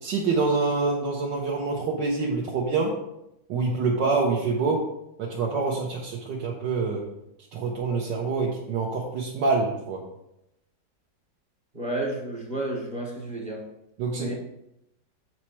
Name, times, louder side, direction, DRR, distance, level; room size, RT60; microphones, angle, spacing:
voice 1, 0.0-2.9 3.5-4.8 5.2-7.0 7.5-10.0 14.0-14.3, right 4 dB, 70° right, -3 dB, 1.6 m, -26 dB
voice 2, 11.7-13.6 14.1-14.3, right 1 dB, 25° right, -2 dB, 1.1 m, -31 dB
7.3 x 4.7 x 4.3 m, 0.83 s
omnidirectional pair, 2.1 m